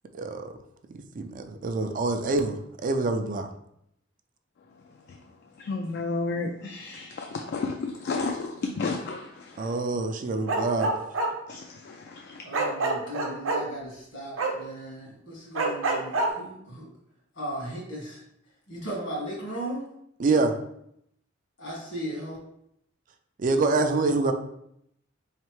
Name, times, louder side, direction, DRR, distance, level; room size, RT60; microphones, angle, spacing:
voice 1, 0.1-0.5 0.9-2.6 2.8-3.5 9.6-10.9 20.2-20.5 23.4-24.3, right 3 dB, 45° right, 6 dB, 0.4 m, -26 dB
voice 2, 5.6-9.7 11.5-12.4, left 3 dB, 55° left, 3 dB, 0.3 m, -32 dB
Bark, 10.4-11.3 12.5-13.6 14.4-14.5 15.6-16.3, right 3 dB, 90° right, 0.7 m, -26 dB
voice 3, 12.4-16.9 17.3-18.2 18.7-19.8 21.6-22.4, right 1 dB, 75° left, -3 dB, 1.6 m, -36 dB
3.8 x 3.2 x 3.1 m, 0.74 s
head